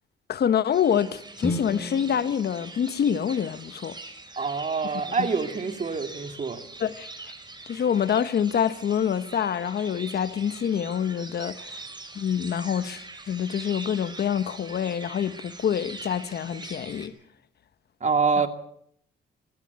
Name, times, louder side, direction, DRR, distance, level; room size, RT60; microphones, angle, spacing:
voice 1, 0.3-4.0 5.2-5.3 6.8-7.1 7.7-11.9 12.1-17.1 18.4-18.5, left 8 dB, 55° left, 1.1 m, -26 dB
sound 1, 0.7-17.1, right 3 dB, 20° right, 5.9 m, -43 dB
sound 2, 1.4-5.5, left 1 dB, 10° left, 4.3 m, -37 dB
voice 2, 4.4-6.6 18.0-18.5, right 5 dB, 35° right, 2.5 m, -26 dB
23.5 x 14.5 x 8.2 m
cardioid pair, 90°, 20 cm